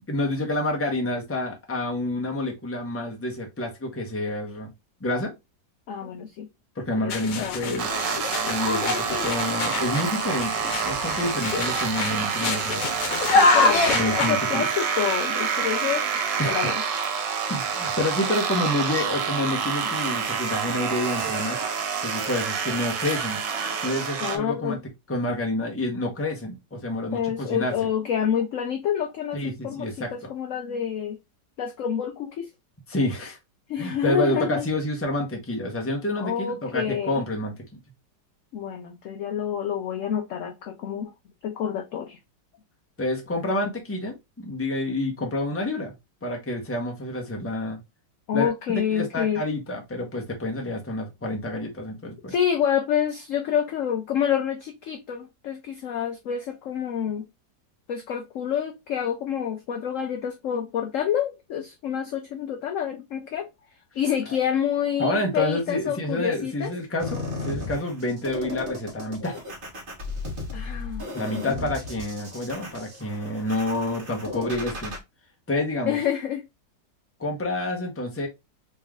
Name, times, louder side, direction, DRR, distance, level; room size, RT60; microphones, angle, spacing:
voice 1, 0.1-4.7 5.0-5.3 6.8-7.9 8.4-12.9 13.9-14.7 16.4-16.6 17.5-21.7 22.0-23.4 23.8-24.8 25.1-27.9 29.3-30.1 32.9-33.4 33.8-37.8 43.0-45.9 46.2-47.8 48.3-48.5 48.9-52.3 65.0-69.4 71.1-74.9 75.5-76.0 77.2-78.3, left 1 dB, 10° left, 0.7 m, -28 dB
voice 2, 5.9-6.5 7.0-7.8 13.3-16.1 16.4-16.8 24.2-24.8 27.1-31.2 31.6-32.5 33.7-34.6 36.2-37.2 38.5-41.1 41.4-42.2 48.3-49.4 52.3-57.2 57.9-63.5 64.0-66.7 70.5-71.7 75.9-76.4, left 9 dB, 70° left, 0.7 m, -28 dB
sound 1, 7.1-14.3, left 3 dB, 90° left, 1.4 m, -25 dB
sound 2, 7.8-24.4, right 6 dB, 90° right, 1.5 m, -27 dB
sound 3, 67.0-75.0, left 2 dB, 35° right, 1.3 m, -35 dB
3.3 x 3.2 x 3.5 m
omnidirectional pair, 1.9 m